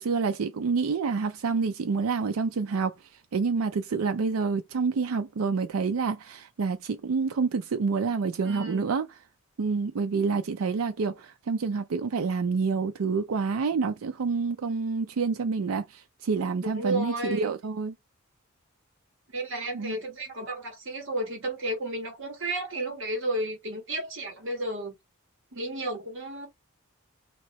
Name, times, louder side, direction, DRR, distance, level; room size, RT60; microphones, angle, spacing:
voice 1, 0.0-9.1 9.6-17.9 19.7-20.0, right 4 dB, 75° right, 0.4 m, -28 dB
voice 2, 8.4-8.9 16.6-17.5 19.3-25.0 25.5-26.5, right 1 dB, 60° right, 1.7 m, -32 dB
3.0 x 2.8 x 4.2 m
head